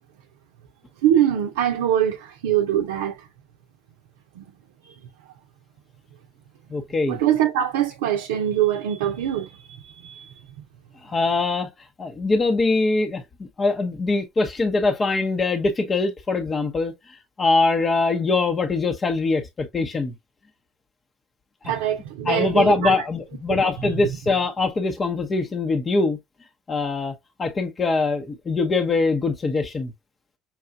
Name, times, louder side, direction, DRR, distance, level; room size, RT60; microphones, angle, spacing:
voice 1, 1.0-3.3 4.4-4.5 7.1-10.3 21.6-23.0 23.5-23.6, right 10 dB, 85° right, 0.6 m, -23 dB
voice 2, 6.7-7.2 11.0-11.7 12.0-13.2 13.6-20.1 22.3-26.2 26.7-29.9, left 3 dB, 30° left, 0.8 m, -23 dB
5.9 x 2.3 x 2.6 m
hypercardioid pair, 75°, 0 cm